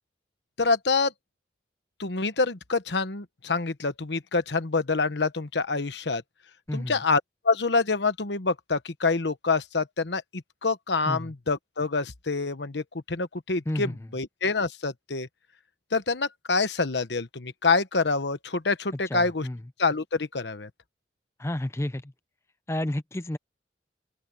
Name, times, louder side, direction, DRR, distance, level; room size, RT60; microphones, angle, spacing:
voice 1, 0.6-1.1 2.0-6.2 6.7-15.3 15.9-19.5 19.8-20.7, left 4 dB, 75° left, 1.1 m, -26 dB
voice 2, 19.1-19.6 21.4-22.1 22.7-23.4, left 1 dB, 15° left, 0.5 m, -30 dB
open air
head